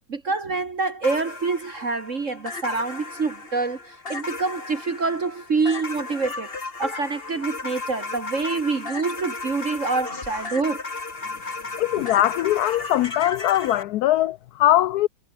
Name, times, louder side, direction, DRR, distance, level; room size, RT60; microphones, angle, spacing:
voice 1, 0.1-6.5 6.8-10.8, right 4 dB, 45° right, 2.0 m, -26 dB
sound 1, 1.0-13.8, left 3 dB, 30° left, 2.4 m, -35 dB
voice 2, 11.8-15.1, left 14 dB, 70° left, 1.0 m, -21 dB
omnidirectional pair, 2.0 m